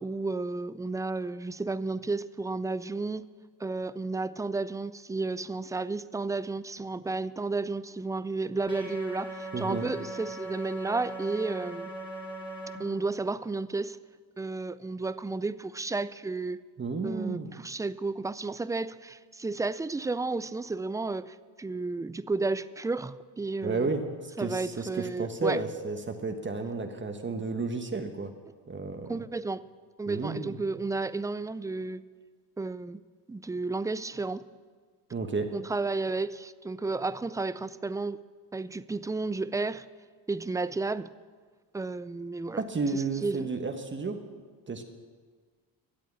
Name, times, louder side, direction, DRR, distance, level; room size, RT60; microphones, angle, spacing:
voice 1, 0.0-3.2 3.6-11.9 12.8-14.0 14.4-16.6 17.0-23.9 24.4-25.6 29.1-29.6 30.0-32.0 32.6-33.0 33.3-34.4 35.5-38.2 38.5-39.9 40.3-41.1 41.7-42.6 42.9-43.5, right 3 dB, 10° right, 0.3 m, -32 dB
sound 1, 8.7-12.8, right 1 dB, 10° left, 2.7 m, -39 dB
voice 2, 9.5-9.8 16.8-17.5 23.6-24.0 24.4-28.3 28.7-29.2 30.1-30.5 35.1-35.5 42.6-44.2 44.7-44.8, right 3 dB, 30° right, 1.2 m, -32 dB
13.0 x 8.4 x 8.5 m
cardioid pair, 85°, 41 cm